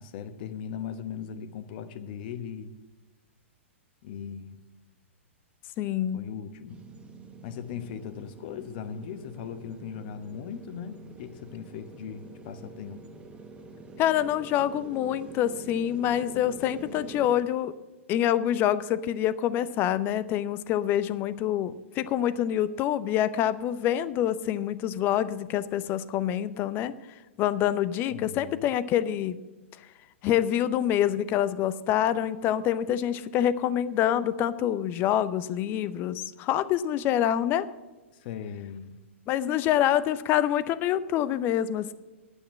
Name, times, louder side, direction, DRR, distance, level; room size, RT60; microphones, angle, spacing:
voice 1, 0.0-2.7 4.0-4.6 6.1-6.8 7.4-13.0 28.1-28.6 38.1-39.0, left 8 dB, 45° left, 10 dB, 1.1 m, -38 dB
voice 2, 5.8-6.3 14.0-17.7 18.1-26.9 27.4-29.4 30.2-37.7 39.3-41.9, left 11 dB, 30° left, 15 dB, 0.6 m, -26 dB
sound 1, 6.7-17.4, right 3 dB, 15° right, 1.1 m, -46 dB
9.9 x 8.6 x 7.3 m, 1.2 s
figure-of-eight pair, 115°, 7 cm